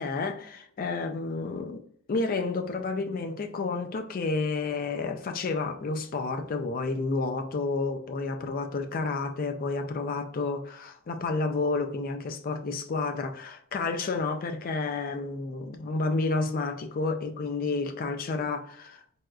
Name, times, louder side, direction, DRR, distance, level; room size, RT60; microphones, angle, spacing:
voice 1, 0.0-1.8 2.1-19.0, left 3 dB, 40° left, 0.3 m, -30 dB
4.1 x 2.3 x 2.3 m
head